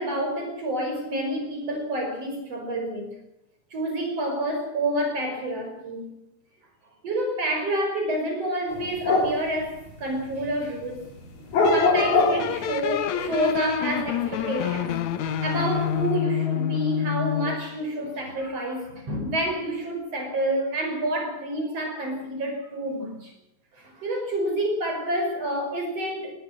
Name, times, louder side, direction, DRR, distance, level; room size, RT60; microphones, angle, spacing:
voice 1, 0.0-3.1 3.7-6.0 7.0-11.1 11.4-11.5 11.7-15.0 15.4-23.3 23.7-26.3, right 1 dB, 35° right, 6.5 m, -28 dB
sound 1, 8.7-10.5 10.8-12.9 13.2-14.9 15.3-16.1, left 3 dB, 45° left, 4.3 m, -23 dB
sound 2, 11.6-17.7, left 10 dB, 65° left, 1.9 m, -28 dB
21.5 x 18.0 x 7.6 m
omnidirectional pair, 4.7 m